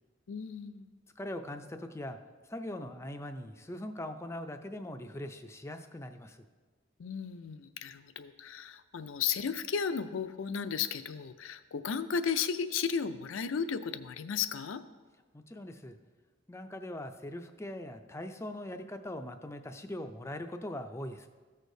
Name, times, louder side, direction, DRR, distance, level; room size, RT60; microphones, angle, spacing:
voice 1, 0.3-0.9 7.0-14.8, left 6 dB, 80° left, 12 dB, 0.5 m, -34 dB
voice 2, 1.2-2.2 2.5-6.4 15.3-16.0 16.5-21.3, left 1 dB, 15° left, 7 dB, 0.4 m, -41 dB
14.5 x 6.4 x 2.7 m, 1.4 s
head